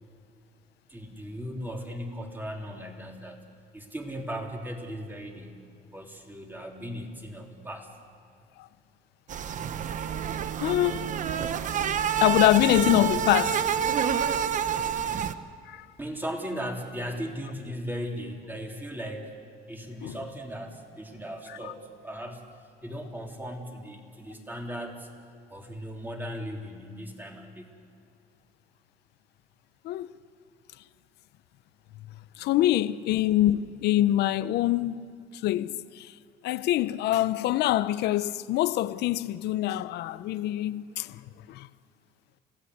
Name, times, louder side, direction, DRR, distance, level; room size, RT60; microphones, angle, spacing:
voice 1, 0.9-3.4 3.7-5.6 5.9-7.9 16.0-19.3 19.7-22.4 22.8-25.1 25.5-27.7, equal, 10° right, 3.5 m, -37 dB
sound 1, 9.3-15.3, right 8 dB, 50° right, 0.9 m, -28 dB
voice 2, 10.6-11.1 12.2-13.6 15.7-15.9 20.0-20.2 29.8-30.1 32.4-35.1 35.4-36.1 36.4-41.2 41.5-41.7, left 14 dB, 75° left, 0.7 m, -25 dB
29.5 x 16.5 x 8.1 m
cardioid pair, 110°, 17 cm